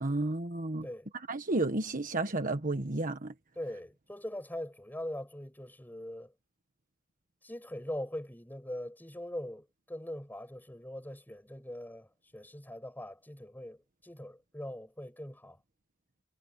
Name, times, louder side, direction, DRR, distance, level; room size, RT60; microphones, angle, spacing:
voice 1, 0.0-0.9 1.3-3.3, right 2 dB, 40° right, 1.4 m, -32 dB
voice 2, 3.6-6.3 7.4-12.1 12.3-15.6, left 1 dB, 10° left, 5.7 m, -41 dB
head